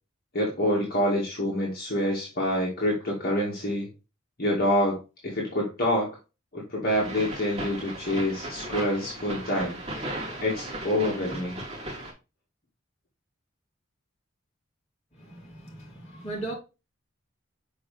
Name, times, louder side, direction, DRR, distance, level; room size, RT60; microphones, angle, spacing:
voice 1, 0.3-3.9 4.4-5.0 5.2-6.2 6.5-9.8 10.4-11.6, left 1 dB, 45° left, 2.2 m, -26 dB
sound 1, 6.9-12.1, right 1 dB, 30° right, 2.8 m, -36 dB
voice 2, 15.1-16.5, right 2 dB, 30° left, 2.8 m, -38 dB
7.0 x 5.1 x 3.3 m
head